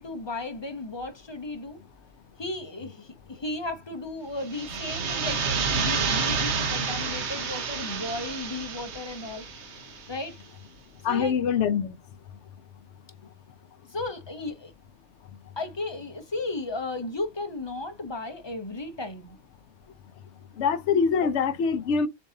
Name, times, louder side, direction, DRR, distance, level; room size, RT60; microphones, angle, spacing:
voice 1, 0.0-1.8 2.4-9.4 10.1-10.4 11.1-11.4 13.9-14.7 15.6-19.4, left 2 dB, 30° left, 0.6 m, -35 dB
sound 1, 4.4-10.1, right 5 dB, 65° right, 1.2 m, -29 dB
voice 2, 11.0-11.9 20.6-22.1, left 6 dB, 70° left, 1.0 m, -24 dB
7.0 x 2.6 x 2.7 m
omnidirectional pair, 1.3 m